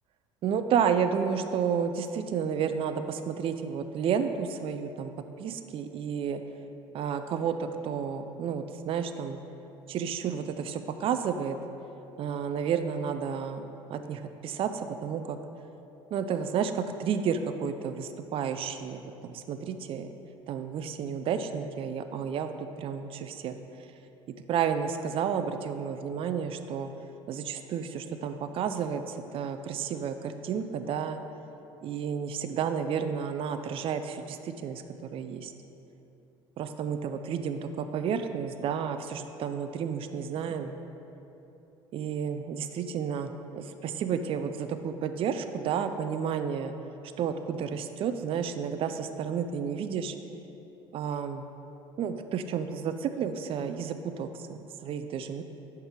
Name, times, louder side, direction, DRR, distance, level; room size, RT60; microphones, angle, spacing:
voice 1, 0.4-5.1 5.4-6.4 6.9-9.4 9.9-11.6 12.2-15.4 16.1-20.1 20.5-23.5 23.8-23.9 24.5-26.9 27.3-31.2 31.8-34.8 35.1-35.5 36.6-40.7 41.9-46.7 47.2-50.1 50.9-51.5 52.0-55.4, right 7 dB, 45° right, 8 dB, 0.4 m, -31 dB
5.8 x 4.8 x 4.5 m, 3.0 s
hypercardioid pair, 70°, 13 cm